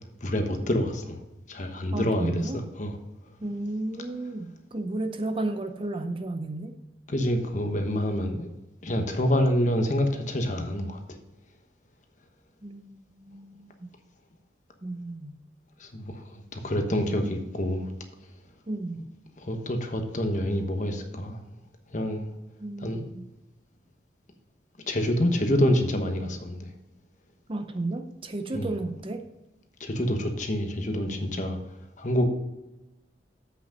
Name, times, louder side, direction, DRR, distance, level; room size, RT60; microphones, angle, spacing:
voice 1, 0.2-1.2 1.5-2.9 7.1-8.5 8.8-11.0 15.8-17.9 19.4-21.4 21.9-22.3 22.8-23.0 24.9-26.7 28.5-28.7 29.8-31.6 32.0-32.3, left 1 dB, 45° left, 5 dB, 1.2 m, -27 dB
voice 2, 1.9-2.6 3.4-6.8 12.6-13.7 14.8-15.4 18.7-19.0 22.6-23.3 27.5-29.3, right 2 dB, 30° right, 8 dB, 0.6 m, -33 dB
8.1 x 6.1 x 5.3 m, 0.98 s
head